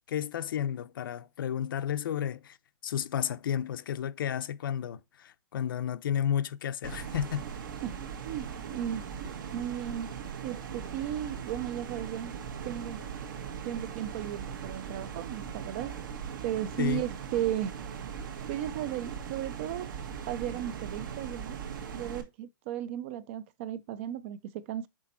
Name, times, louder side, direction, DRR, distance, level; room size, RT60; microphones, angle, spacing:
voice 1, 0.1-2.6 2.8-7.4 16.8-17.1, left 9 dB, 75° left, 0.7 m, -32 dB
sound 1, 6.8-22.2, right 7 dB, 65° right, 1.4 m, -40 dB
voice 2, 8.2-10.1 10.4-12.3 12.6-13.0 13.6-16.0 16.4-17.8 18.5-19.9 20.3-21.6 21.9-24.9, right 11 dB, 35° right, 0.5 m, -35 dB
6.2 x 4.1 x 4.3 m
hypercardioid pair, 165°, 11 cm